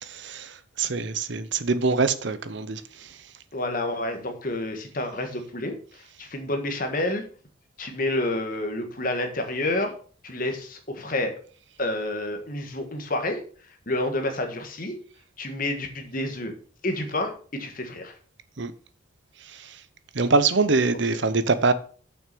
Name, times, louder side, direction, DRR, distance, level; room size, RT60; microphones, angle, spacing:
voice 1, 0.0-3.2 18.6-18.7 19.4-19.8 20.1-21.7, right 4 dB, 60° right, 0.8 m, -24 dB
voice 2, 3.5-7.2 7.8-9.9 10.2-11.3 11.8-13.4 13.9-15.0 15.4-16.5 16.8-18.1, left 1 dB, 40° left, 1.7 m, -29 dB
7.0 x 6.1 x 6.8 m
head